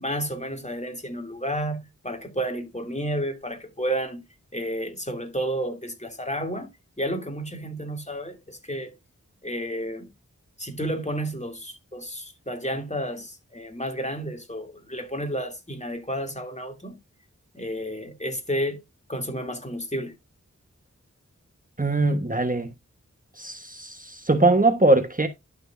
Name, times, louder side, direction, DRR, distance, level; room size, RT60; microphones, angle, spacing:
voice 1, 0.0-4.2 4.5-6.7 7.0-8.9 9.4-10.1 10.6-17.0 17.5-18.8 19.1-20.1, equal, 25° left, 2.6 m, -31 dB
voice 2, 21.8-22.7 23.4-25.3, right 2 dB, 30° right, 1.2 m, -21 dB
11.5 x 6.1 x 2.6 m
wide cardioid pair, 45°, 30 cm